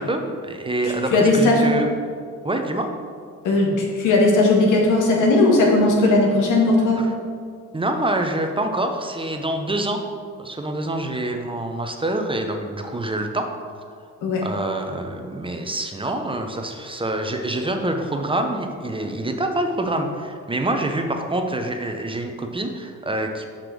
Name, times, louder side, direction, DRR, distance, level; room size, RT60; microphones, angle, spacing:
voice 1, 0.0-1.9 2.4-2.9 7.0-7.1 7.7-10.0 10.4-13.5 14.0-14.1 14.4-23.5, right 1 dB, 15° right, 4 dB, 0.7 m, -26 dB
voice 2, 0.8-1.6 3.4-7.0 14.2-14.4, left 2 dB, 90° left, -1 dB, 1.6 m, -17 dB
5.8 x 5.1 x 6.2 m, 2.1 s
cardioid pair, 90°, 30 cm